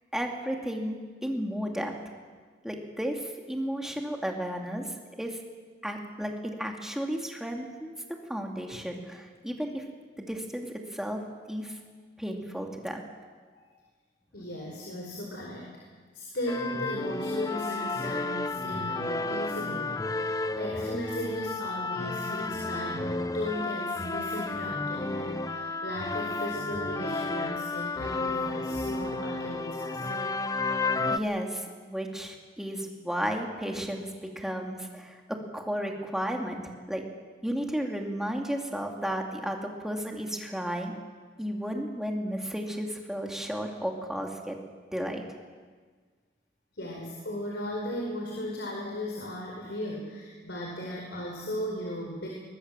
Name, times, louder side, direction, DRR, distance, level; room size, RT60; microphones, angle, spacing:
voice 1, 0.1-1.9 2.6-5.4 5.8-7.9 8.3-9.8 10.2-11.2 11.5-11.8 12.2-13.0 31.1-34.1 34.4-36.6 36.9-37.0 37.4-40.9 41.4-44.6 44.9-45.2, equal, 5° right, 1 dB, 2.5 m, -33 dB
voice 2, 14.3-15.7 16.1-30.3 46.7-52.3, left 1 dB, 75° left, -1 dB, 4.6 m, -36 dB
sound 1, 16.5-31.2, left 3 dB, 20° left, 0.6 m, -32 dB
22.0 x 20.5 x 7.5 m, 1.5 s
head